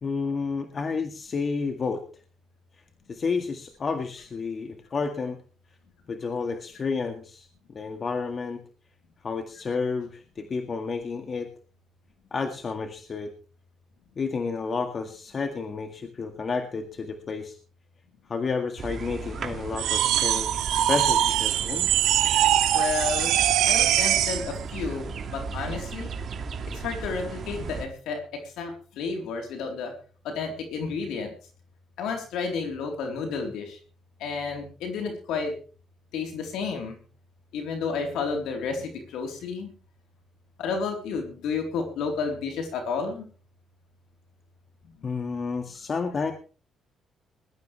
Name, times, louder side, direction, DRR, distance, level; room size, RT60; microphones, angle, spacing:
voice 1, 0.0-2.0 3.1-5.4 6.1-8.6 9.2-11.5 12.3-13.3 14.2-17.6 18.3-21.9 45.0-46.3, left 4 dB, 45° left, 5 dB, 1.9 m, -31 dB
sound 1, 18.8-27.9, right 5 dB, 50° right, 2.3 m, -36 dB
sound 2, 19.8-24.5, right 12 dB, 90° right, 1.7 m, -22 dB
voice 2, 22.7-23.4 23.6-26.1 26.7-29.9 30.2-31.3 32.0-33.8 34.2-35.5 36.1-37.0 37.5-39.7 40.6-43.3, left 5 dB, 85° left, 3 dB, 3.9 m, -31 dB
21.0 x 13.0 x 3.4 m, 0.38 s
cardioid pair, 90°, 0 cm